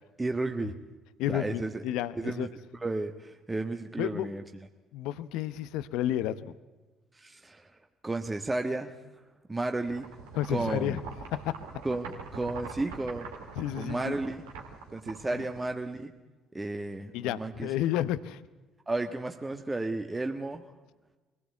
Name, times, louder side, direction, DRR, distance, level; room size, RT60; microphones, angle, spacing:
voice 1, 0.2-0.7 1.3-1.8 2.1-2.5 2.7-4.4 7.1-7.7 8.0-9.0 9.5-10.1 10.5-11.0 11.8-13.3 13.8-14.4 14.9-16.2 16.5-17.7 18.9-20.6, right 2 dB, 20° right, 5 dB, 1.5 m, -33 dB
voice 2, 1.2-2.5 4.0-4.3 4.9-6.5 10.3-11.0 11.3-11.6 13.6-14.2 15.3-15.4 17.1-18.4, left 12 dB, 70° left, 15 dB, 0.8 m, -31 dB
sound 1, 9.9-16.0, right 5 dB, 80° right, 2.7 m, -44 dB
23.0 x 17.0 x 8.3 m, 1.2 s
hypercardioid pair, 55°, 0 cm